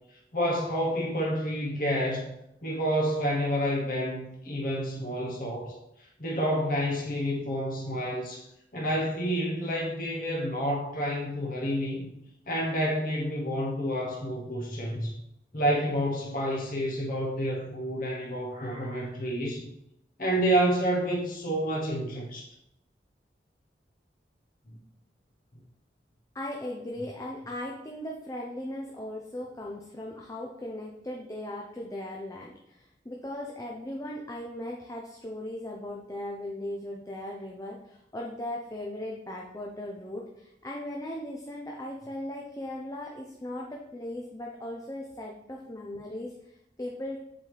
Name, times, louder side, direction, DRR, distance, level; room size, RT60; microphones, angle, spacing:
voice 1, 0.3-2.3 2.6-5.8 6.2-8.5 8.7-12.1 12.5-15.1 15.5-19.7 20.2-22.5 24.7-24.8, equal, 50° left, -3 dB, 1.1 m, -29 dB
voice 2, 26.3-47.2, left 1 dB, 20° left, -2 dB, 0.6 m, -38 dB
7.5 x 4.0 x 3.3 m, 0.82 s
head